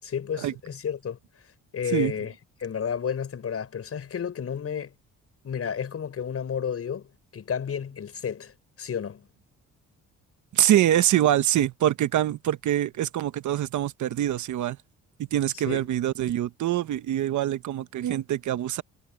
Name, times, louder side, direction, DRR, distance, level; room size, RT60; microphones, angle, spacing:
voice 1, 0.0-1.2 1.7-2.3 2.6-4.9 5.4-7.1 7.3-9.3 15.7-15.9, left 7 dB, 50° left, 6.7 m, -31 dB
voice 2, 10.5-14.8 15.3-18.8, right 12 dB, 75° right, 1.2 m, -24 dB
cardioid pair, 90°, 30 cm